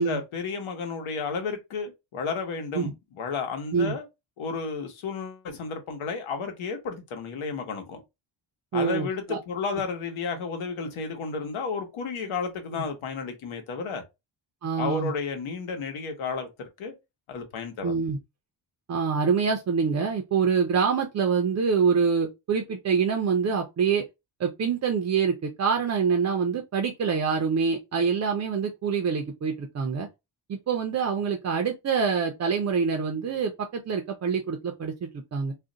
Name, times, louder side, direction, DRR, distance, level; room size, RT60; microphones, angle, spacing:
voice 1, 0.0-4.1 4.4-8.0 8.7-14.0 14.8-16.9 17.3-18.0, left 5 dB, 85° left, 1.0 m, -32 dB
voice 2, 8.7-9.4 14.6-15.1 17.8-18.2 18.9-24.0 24.4-30.1 30.5-35.5, right 6 dB, 40° right, 0.4 m, -25 dB
2.5 x 2.1 x 3.7 m
wide cardioid pair, 170°, 47 cm